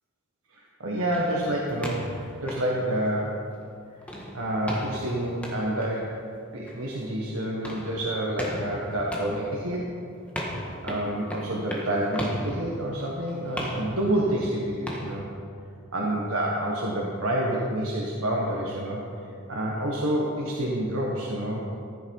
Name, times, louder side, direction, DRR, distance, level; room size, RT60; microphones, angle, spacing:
voice 1, 0.5-3.4 4.3-6.2 6.5-9.9 10.8-15.2 15.9-19.0 19.5-21.6, right 1 dB, 85° right, -4 dB, 1.5 m, -28 dB
sound 1, 1.1-3.6 4.0-15.1, equal, 5° left, 1.8 m, -37 dB
14.5 x 9.7 x 4.8 m, 2.4 s
head